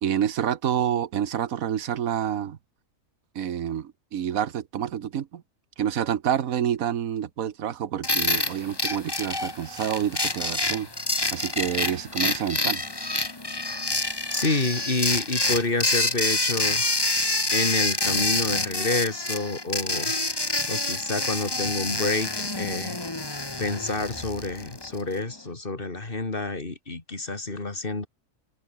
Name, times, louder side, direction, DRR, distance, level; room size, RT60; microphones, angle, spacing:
voice 1, 0.0-2.6 3.3-5.4 5.8-10.9 11.3-12.8, right 9 dB, 90° right, 1.5 m, -28 dB
sound 1, 8.0-25.0, left 2 dB, 20° left, 1.6 m, -27 dB
voice 2, 14.0-16.9 17.5-20.1 20.7-23.0 23.6-28.1, left 3 dB, 40° left, 2.7 m, -28 dB
omnidirectional pair, 1.4 m